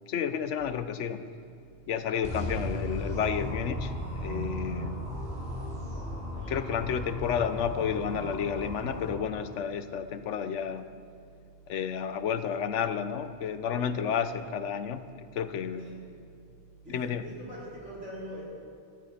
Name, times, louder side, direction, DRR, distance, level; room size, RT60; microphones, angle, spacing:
voice 1, 0.1-1.2 1.9-3.9 4.2-5.0 6.5-10.9 11.7-15.9 16.9-17.3, left 7 dB, 85° left, 11 dB, 1.1 m, -31 dB
sound 1, 0.6-17.8, right 4 dB, 65° left, 1.4 m, -57 dB
sound 2, 2.2-9.1, left 1 dB, 50° right, 3.8 m, -36 dB
voice 2, 15.7-16.1 16.8-18.4, equal, 85° right, -7 dB, 5.0 m, -43 dB
18.0 x 13.5 x 4.2 m, 2.3 s
omnidirectional pair, 1.2 m